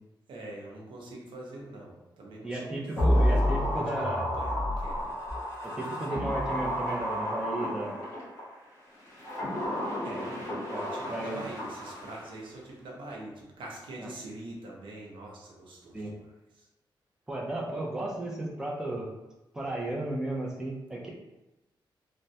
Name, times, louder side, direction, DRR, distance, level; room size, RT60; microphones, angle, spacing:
voice 1, 0.3-5.0 5.5-5.7 10.0-10.3 10.8-16.3 16.6-16.7, right 2 dB, 85° right, -2 dB, 0.7 m, -44 dB
voice 2, 2.4-4.3 5.6-8.0 10.1-10.4 10.7-11.4 14.0-14.1 15.9-16.1 17.3-19.1 19.5-21.1, right 1 dB, 5° right, -3 dB, 0.4 m, -34 dB
sound 1, 3.0-8.4 9.1-12.3 12.6-12.7, equal, 35° left, 1.1 m, -30 dB
3.3 x 2.1 x 2.7 m, 1.0 s
wide cardioid pair, 175°, 8 cm